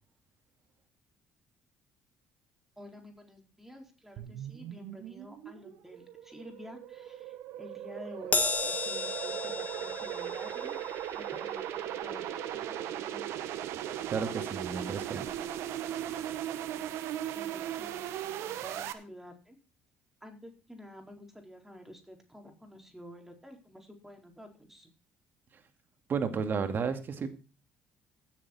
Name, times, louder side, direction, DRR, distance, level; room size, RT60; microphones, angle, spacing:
voice 1, 2.8-10.7 11.2-12.3 12.5-13.4 17.3-19.6 20.2-24.9, equal, 5° right, 3 dB, 4.2 m, -50 dB
sound 1, 4.2-18.9, right 11 dB, 75° right, 1.3 m, -38 dB
Crash cymbal, 8.3-14.9 15.3-15.5 16.5-16.6, left 4 dB, 35° left, 2.4 m, -36 dB
voice 2, 14.1-15.3 26.1-27.3, right 5 dB, 50° right, 8 dB, 2.3 m, -32 dB
16.0 x 7.4 x 4.3 m, 0.33 s
supercardioid pair, 70°, 5 cm